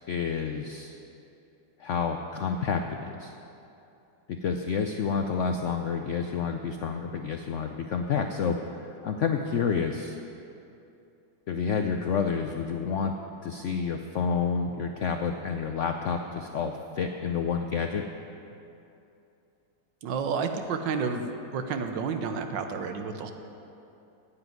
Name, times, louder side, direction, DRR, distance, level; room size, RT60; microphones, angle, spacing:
voice 1, 0.1-1.0 1.8-3.3 4.4-8.7 9.0-10.2 11.5-13.1 13.4-18.0, left 6 dB, 75° left, 5 dB, 0.6 m, -29 dB
voice 2, 20.0-23.3, right 5 dB, 85° right, 6 dB, 1.6 m, -30 dB
9.6 x 8.7 x 9.3 m, 2.8 s
omnidirectional pair, 2.0 m